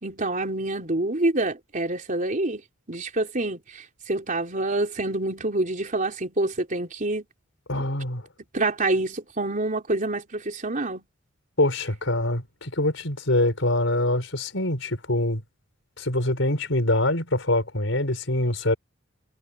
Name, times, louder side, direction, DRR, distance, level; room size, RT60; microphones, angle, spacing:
voice 1, 0.0-2.6 2.9-7.2 8.5-11.0, right 2 dB, 45° right, 3.7 m, -27 dB
voice 2, 7.7-8.3 11.6-15.4 16.0-18.8, left 1 dB, 75° left, 5.7 m, -24 dB
head